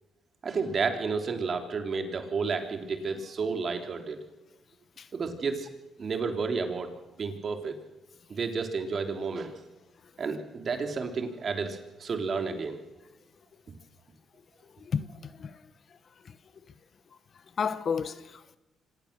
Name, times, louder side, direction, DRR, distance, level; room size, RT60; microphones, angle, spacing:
voice 1, 0.4-4.2 5.1-5.7 6.0-6.9 7.2-7.8 8.3-9.5 10.2-12.8, right 4 dB, 45° right, 3.2 m, -31 dB
voice 2, 14.8-15.6 16.2-16.3 17.6-18.6, left 6 dB, 50° left, 1.1 m, -32 dB
25.5 x 18.0 x 6.8 m
cardioid pair, 90°, 0 cm